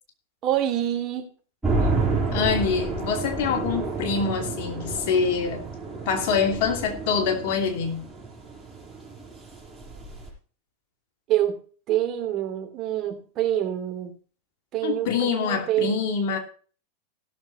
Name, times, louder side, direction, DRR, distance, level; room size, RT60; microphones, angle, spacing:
voice 1, 0.4-1.3 11.3-11.6 11.9-14.1 14.7-16.0, right 12 dB, 40° right, 2.7 m, -26 dB
sound 1, 1.6-10.3, right 3 dB, 10° right, 5.6 m, -30 dB
voice 2, 2.3-5.6 6.1-8.0 14.8-16.4, left 6 dB, 55° left, 2.8 m, -25 dB
17.0 x 7.1 x 4.1 m
hypercardioid pair, 100°, 0 cm